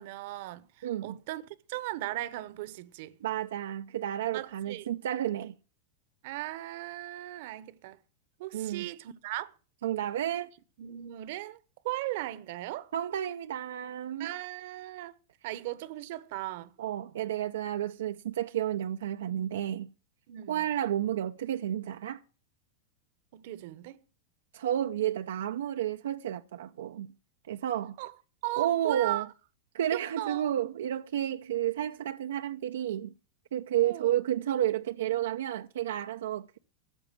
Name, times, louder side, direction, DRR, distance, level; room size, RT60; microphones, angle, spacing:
voice 1, 0.0-3.2 4.3-4.9 6.2-8.0 8.4-9.5 10.8-11.6 11.8-12.9 14.2-15.1 15.4-16.8 20.3-20.6 23.3-24.0 28.0-28.1 28.4-29.3 29.9-30.5 33.8-34.1, right 16 dB, 60° right, 0.9 m, -37 dB
voice 2, 0.8-1.2 3.2-5.6 8.5-8.9 9.8-10.5 12.9-14.3 16.8-19.9 20.5-22.2 24.5-27.1 27.5-28.0 28.6-29.2 29.7-33.1 33.5-36.6, right 11 dB, 85° right, 0.6 m, -31 dB
13.5 x 7.1 x 7.4 m
supercardioid pair, 130°, 0 cm